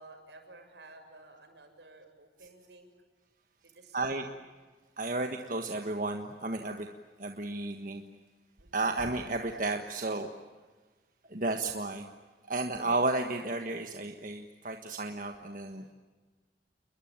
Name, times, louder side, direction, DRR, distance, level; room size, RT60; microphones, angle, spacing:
voice 1, 0.0-2.9 3.6-4.4 8.6-8.9, right 2 dB, 80° right, 5 dB, 6.9 m, -54 dB
voice 2, 3.9-4.3 5.0-6.9 7.2-8.0 8.7-10.3 11.3-12.0 12.5-15.9, right 2 dB, 50° right, 5 dB, 1.5 m, -33 dB
30.0 x 22.0 x 8.9 m, 1.4 s
head